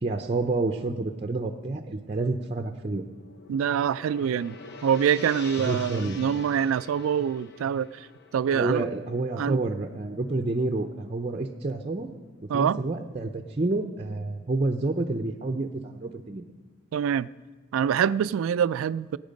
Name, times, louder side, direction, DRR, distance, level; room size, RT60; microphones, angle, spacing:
voice 1, 0.0-3.1 5.7-6.2 8.5-12.1 12.5-16.4, right 2 dB, 30° right, 0.5 m, -29 dB
Gong, 2.7-11.1, left 3 dB, 55° left, 0.9 m, -45 dB
voice 2, 3.5-4.6 4.8-8.1 8.3-8.9 9.4-9.6 12.5-12.8 16.9-17.3 17.7-19.2, right 8 dB, 85° right, 0.3 m, -25 dB
18.5 x 9.0 x 5.2 m
head